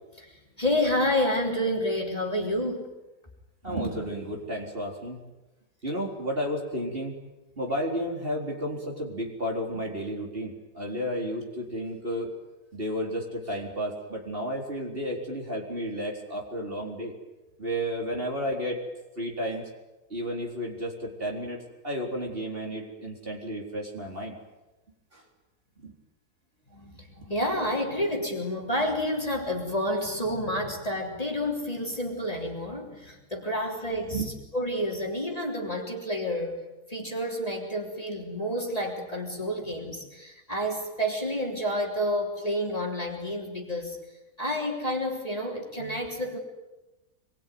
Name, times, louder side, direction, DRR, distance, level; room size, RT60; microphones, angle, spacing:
voice 1, 0.6-2.9 26.7-34.2 34.5-36.6 36.9-44.0 44.4-46.4, left 1 dB, 20° left, 0 dB, 3.8 m, -29 dB
voice 2, 3.6-5.2 5.8-7.2 7.6-12.3 12.7-17.1 17.6-18.8 19.2-19.7 20.1-24.4 25.1-25.2 25.8-25.9 34.1-34.3 45.8-46.0, equal, 35° right, 0 dB, 4.4 m, -32 dB
26.0 x 22.0 x 9.5 m, 1.1 s
omnidirectional pair, 1.7 m